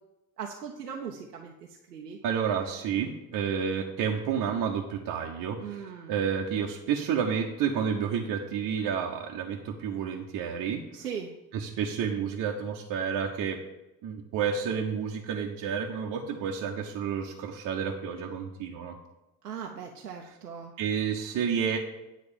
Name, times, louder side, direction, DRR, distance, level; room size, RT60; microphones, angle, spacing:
voice 1, 0.4-1.5 1.9-2.2 5.6-6.1 10.9-11.3 19.4-20.7, right 7 dB, 85° right, 1 dB, 0.8 m, -39 dB
voice 2, 2.2-5.8 6.1-10.8 11.5-13.6 14.0-19.0 20.8-21.8, right 7 dB, 45° right, -1 dB, 1.0 m, -30 dB
9.8 x 4.1 x 7.2 m, 0.97 s
figure-of-eight pair, 55°, 46 cm